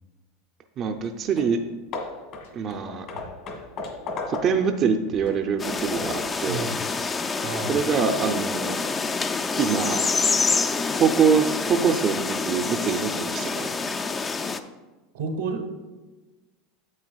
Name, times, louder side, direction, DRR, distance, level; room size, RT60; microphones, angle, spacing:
voice 1, 0.8-1.6 2.5-3.1 4.3-6.7 7.7-8.8 9.6-10.0 10.9-13.7, right 6 dB, 40° right, 5 dB, 0.5 m, -24 dB
sound 1, 1.0-1.1 2.4-2.5 3.1-3.4 3.8-3.9 5.1-5.3 6.0-6.2 6.6-6.7, left 3 dB, 90° left, 0.9 m, -46 dB
Hammer / Wood, 1.0-1.1 1.4-1.6 1.9-4.8 5.3-6.3, left 3 dB, 50° left, 1.8 m, -35 dB
sound 2, 5.6-14.6, left 4 dB, 25° left, 0.4 m, -27 dB
voice 2, 6.5-6.8 7.4-7.8 15.1-15.7, right 4 dB, 90° right, 5 dB, 1.1 m, -30 dB
9.5 x 7.4 x 2.3 m, 1.2 s
hypercardioid pair, 105°, 0 cm